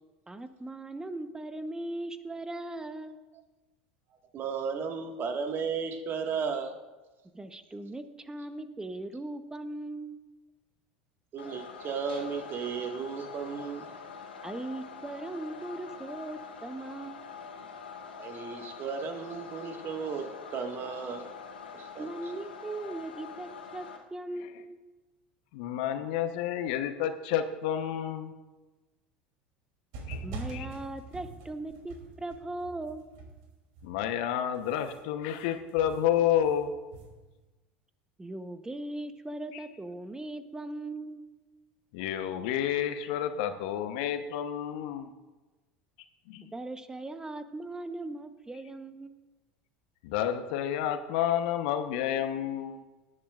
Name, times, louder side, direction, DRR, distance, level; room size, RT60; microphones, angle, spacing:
voice 1, 0.3-3.2 7.3-10.2 14.4-17.2 22.0-24.8 30.2-33.1 38.2-41.2 46.5-49.1, right 2 dB, 10° right, 10 dB, 1.0 m, -39 dB
voice 2, 4.3-6.7 11.3-13.9 18.2-21.3 21.7-22.1, right 6 dB, 45° right, 4 dB, 1.7 m, -34 dB
sound 1, 11.4-24.0, left 6 dB, 85° left, 1.6 m, -45 dB
voice 3, 25.5-28.3 30.1-30.2 30.5-30.7 33.8-36.7 41.9-45.1 46.3-46.4 50.0-52.8, left 10 dB, 65° left, 8 dB, 1.0 m, -30 dB
sound 2, 29.9-34.2 34.5-37.4, right 3 dB, 60° right, 3.1 m, -44 dB
18.5 x 10.0 x 2.5 m, 1.2 s
hypercardioid pair, 80°, 5 cm